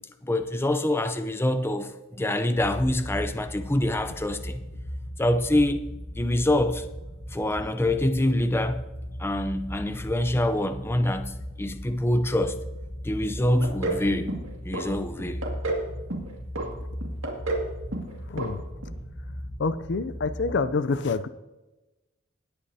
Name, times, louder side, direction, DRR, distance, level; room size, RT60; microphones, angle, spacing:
voice 1, 0.2-4.6 5.2-5.9 6.1-6.8 7.3-8.8 9.2-12.6 13.0-14.4 14.6-15.4, left 1 dB, 10° left, 0.6 m, -25 dB
sound 1, 2.5-20.6, equal, 35° left, 1.3 m, -38 dB
sound 2, 13.6-14.0 14.3-14.9 15.2-15.8 16.1-16.7 17.0-17.7 17.9-18.1 18.4-18.5 18.8-18.9, right 2 dB, 70° right, 2.3 m, -29 dB
voice 2, 18.3-18.7 19.6-21.3, left 4 dB, 60° left, 0.5 m, -27 dB
19.5 x 8.6 x 2.8 m
head